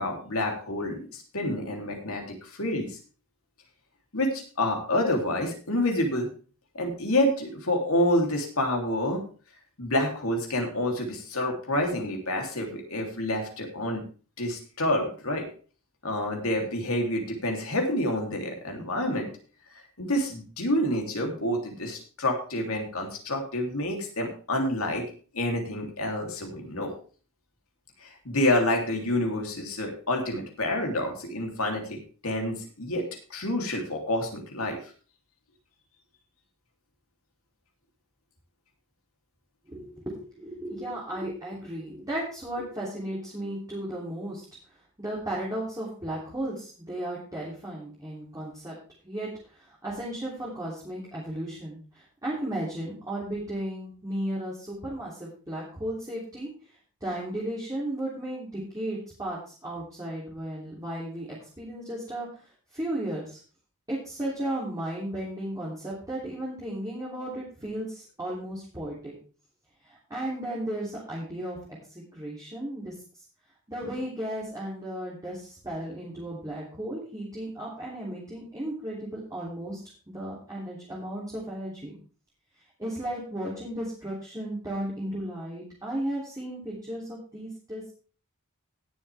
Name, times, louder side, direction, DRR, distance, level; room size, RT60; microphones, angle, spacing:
voice 1, 0.0-3.0 4.1-6.3 6.7-9.2 9.8-14.0 14.4-15.5 16.0-19.3 20.0-25.1 25.3-26.9 28.0-34.8, left 1 dB, 70° left, 2 dB, 3.2 m, -28 dB
voice 2, 39.7-48.8 49.0-56.5 57.0-63.4 63.9-69.1 69.8-71.6 71.9-73.2 73.7-79.8 80.1-82.0 82.8-87.8, right 1 dB, 15° right, -6 dB, 3.2 m, -35 dB
18.5 x 7.0 x 3.5 m, 0.39 s
head